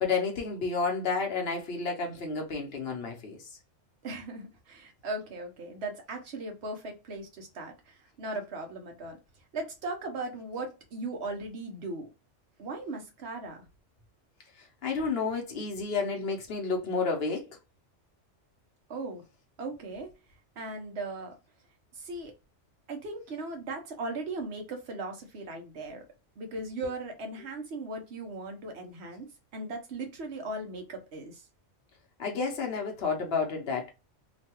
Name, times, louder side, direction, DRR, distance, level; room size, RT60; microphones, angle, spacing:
voice 1, 0.0-3.4 14.8-17.5 32.2-33.9, left 4 dB, 60° left, 0.9 m, -30 dB
voice 2, 4.0-9.2 9.5-12.1 12.6-13.6 18.9-19.2 19.6-20.1 20.6-21.4 21.9-22.3 22.9-26.0 26.4-31.4, right 2 dB, 65° right, 1.1 m, -38 dB
3.1 x 2.2 x 2.8 m
omnidirectional pair, 1.2 m